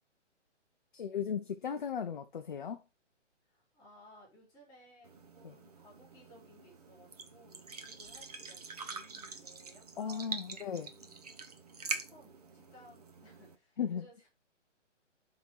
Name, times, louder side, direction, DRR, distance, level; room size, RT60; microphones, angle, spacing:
voice 1, 0.9-2.8 5.4-5.6 10.0-10.9 13.8-14.1, left 7 dB, 45° left, 0.5 m, -36 dB
voice 2, 3.4-11.2 11.9-14.3, left 1 dB, 10° left, 3.7 m, -60 dB
sound 1, 5.0-13.5, right 4 dB, 35° right, 0.6 m, -45 dB
7.0 x 3.7 x 4.5 m
hypercardioid pair, 165°, 37 cm